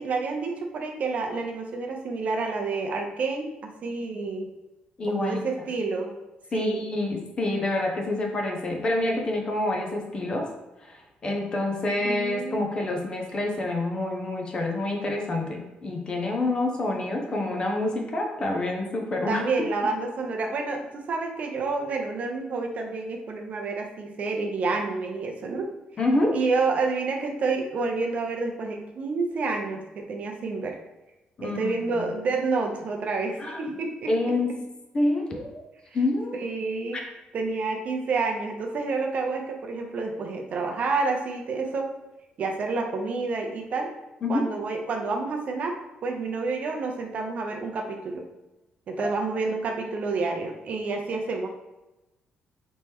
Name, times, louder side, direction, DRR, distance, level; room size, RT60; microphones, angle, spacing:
voice 1, 0.0-4.5 5.1-6.1 6.5-6.8 12.0-12.6 19.3-25.7 26.3-30.8 31.4-34.1 36.4-37.0 37.3-41.9 42.4-43.9 44.3-48.2 48.9-51.5, right 3 dB, 50° right, 3 dB, 0.6 m, -29 dB
voice 2, 5.0-5.4 6.5-10.5 10.8-19.4 26.0-26.4 31.4-32.1 33.4-33.8 34.1-34.5 34.9-35.6 35.9-36.5 36.9-37.0 44.2-44.4, left 2 dB, 30° left, 1 dB, 0.7 m, -27 dB
4.3 x 3.1 x 3.5 m, 1.0 s
cardioid pair, 140°, 3 cm